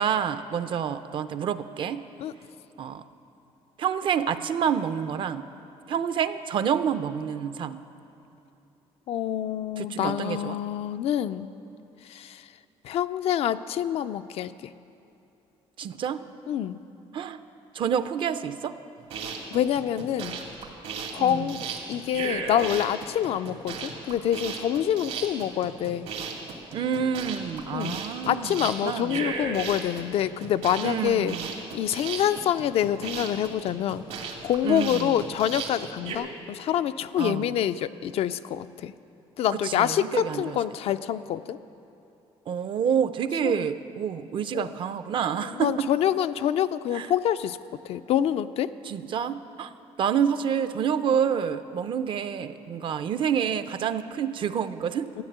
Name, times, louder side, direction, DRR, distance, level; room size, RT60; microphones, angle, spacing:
voice 1, 0.0-2.0 2.8-3.0 3.8-5.4 5.9-7.8 9.8-10.6 15.8-16.2 17.1-17.4 17.7-18.8 21.2-21.5 26.7-29.2 30.8-31.5 34.6-35.2 37.2-37.6 39.5-40.6 42.5-45.9 46.9-47.1 48.8-49.7 50.0-55.2, right 8 dB, 50° right, 12 dB, 0.5 m, -28 dB
voice 2, 9.1-11.5 12.1-12.4 12.8-14.5 16.5-16.8 19.5-20.4 21.1-26.1 27.7-28.0 28.3-31.4 31.7-38.9 39.4-41.6 43.4-43.7 44.5-44.7 45.5-47.6 47.8-48.7 55.2-55.3, left 10 dB, 65° left, 12 dB, 0.4 m, -26 dB
sound 1, 19.0-36.2, right 5 dB, 80° right, 2.2 m, -35 dB
13.5 x 9.9 x 8.0 m, 2.8 s
cardioid pair, 150°, 11 cm